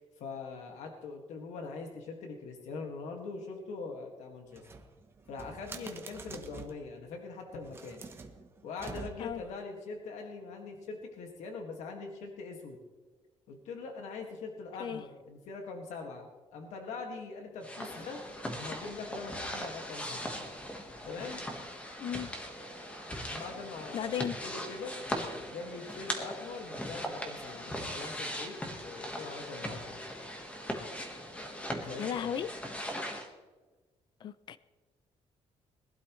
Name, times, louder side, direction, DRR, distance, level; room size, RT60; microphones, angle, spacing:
voice 1, 0.0-4.6 5.3-8.0 8.6-12.8 13.5-18.2 18.6-20.4 21.0-21.4 23.3-24.1 24.4-25.0 25.3-30.0 31.8-32.4, left 4 dB, 80° left, 2 dB, 2.0 m, -42 dB
sound 1, 4.5-6.9 7.6-9.5, right 4 dB, 20° right, 0.9 m, -47 dB
sound 2, 17.6-33.3, equal, 10° left, 1.4 m, -39 dB
voice 2, 22.0-22.3 23.9-24.4 32.0-32.5 34.2-34.6, left 9 dB, 40° left, 16 dB, 0.5 m, -35 dB
21.0 x 12.0 x 3.2 m, 1.3 s
cardioid pair, 180°, 12 cm